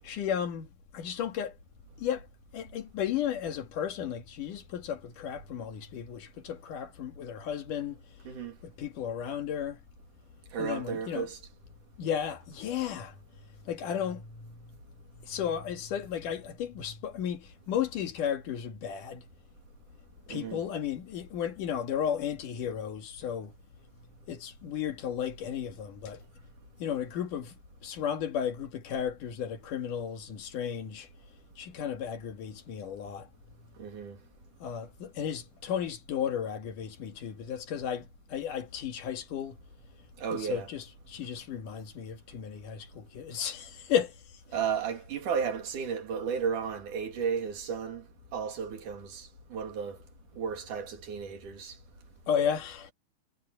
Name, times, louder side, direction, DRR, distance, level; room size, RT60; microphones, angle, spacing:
voice 1, 0.0-1.6 2.0-2.3 2.5-8.0 8.6-9.8 10.6-11.3 12.0-13.2 13.7-14.8 15.2-19.3 20.3-23.5 24.3-26.2 26.8-27.5 27.8-31.1 31.6-33.3 34.6-39.6 40.3-44.4 52.3-52.9, left 8 dB, 85° left, 3.4 m, -34 dB
voice 2, 10.5-11.4 20.3-20.6 33.8-34.2 40.2-40.7 44.5-48.0 48.3-50.0 50.4-51.7, right 7 dB, 80° right, 4.1 m, -33 dB
omnidirectional pair, 3.6 m